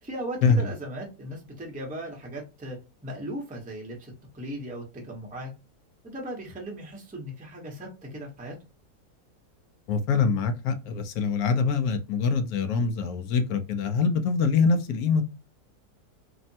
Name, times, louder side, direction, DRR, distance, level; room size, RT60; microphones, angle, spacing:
voice 1, 0.0-5.5 6.0-8.6, right 1 dB, 10° right, 0.6 m, -37 dB
voice 2, 9.9-15.2, left 5 dB, 70° left, 1.0 m, -24 dB
3.3 x 2.1 x 2.6 m
omnidirectional pair, 1.8 m